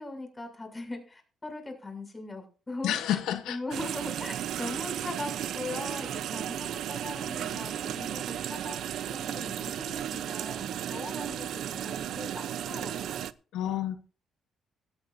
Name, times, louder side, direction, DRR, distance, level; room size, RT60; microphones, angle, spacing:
voice 1, 0.0-3.2 3.5-8.8 9.1-13.2, left 2 dB, 20° left, 6.8 m, -40 dB
voice 2, 2.8-3.6 13.5-14.0, left 11 dB, 90° left, 1.0 m, -29 dB
sound 1, 3.7-13.3, right 10 dB, 75° right, 0.6 m, -34 dB
17.5 x 13.5 x 2.7 m
cardioid pair, 90°, 0 cm